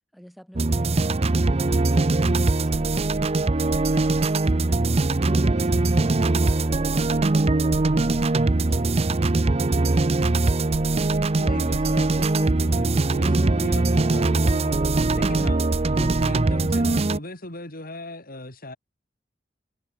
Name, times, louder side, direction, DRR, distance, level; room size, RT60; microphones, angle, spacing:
voice 1, 0.1-0.2, equal, ahead, 6.2 m, -49 dB
sound 1, 0.6-17.2, right 2 dB, 35° right, 0.7 m, -21 dB
voice 2, 11.4-14.8 15.1-15.6 15.9-18.8, left 1 dB, 55° left, 6.1 m, -38 dB
head